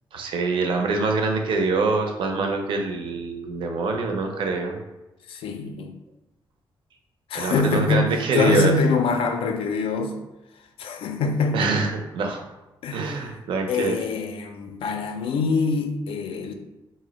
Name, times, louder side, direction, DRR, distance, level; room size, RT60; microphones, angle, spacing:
voice 1, 0.1-4.8 7.3-8.7 11.5-12.4 12.9-14.0, right 3 dB, 70° right, 3 dB, 0.5 m, -25 dB
voice 2, 5.3-5.9 7.3-10.2 10.8-11.8 12.8-13.1 13.7-16.5, left 4 dB, 90° left, 6 dB, 0.4 m, -24 dB
2.5 x 2.0 x 3.9 m, 1.0 s
wide cardioid pair, 165°, 9 cm